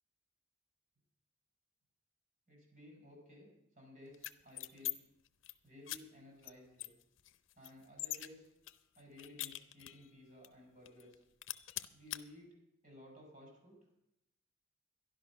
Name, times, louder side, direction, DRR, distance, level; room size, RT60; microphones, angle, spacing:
voice 1, 2.5-3.5 3.7-5.0 5.6-6.9 7.6-8.5 9.0-11.2 11.9-12.5 12.8-13.8, left 1 dB, 45° right, -1 dB, 5.8 m, -56 dB
sound 1, 4.1-4.9 5.3-5.5 5.9-6.0 6.4-6.5 6.8-8.3 8.7-10.1 10.4-10.5 10.8-11.1 11.4-12.2, left 15 dB, 85° left, 0.6 m, -42 dB
12.5 x 11.5 x 6.0 m, 0.85 s
head